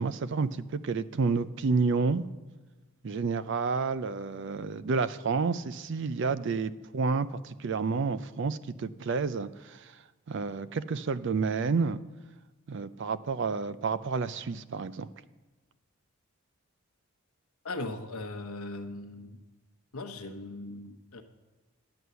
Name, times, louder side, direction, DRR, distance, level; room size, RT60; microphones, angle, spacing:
voice 1, 0.0-2.3 3.0-10.0 10.3-12.0 12.7-15.1, right 4 dB, 55° right, 14 dB, 0.4 m, -30 dB
voice 2, 17.6-19.4 19.9-21.2, left 2 dB, 75° left, 7 dB, 1.0 m, -39 dB
11.0 x 7.9 x 6.8 m, 1.2 s
head